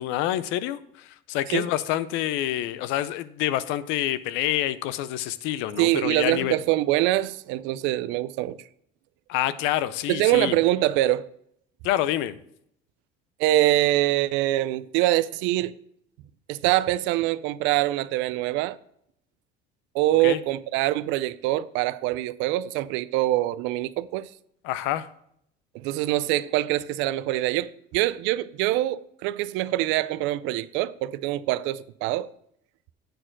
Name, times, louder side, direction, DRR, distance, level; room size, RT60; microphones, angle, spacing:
voice 1, 0.0-6.6 9.3-10.5 11.8-12.4 20.2-20.4 24.6-25.1, left 13 dB, 85° left, 0.6 m, -27 dB
voice 2, 5.8-8.6 10.1-11.2 13.4-15.7 16.5-18.8 19.9-24.3 25.7-32.3, right 15 dB, 80° right, 0.4 m, -24 dB
9.2 x 4.4 x 6.0 m
cardioid pair, 170°, 19 cm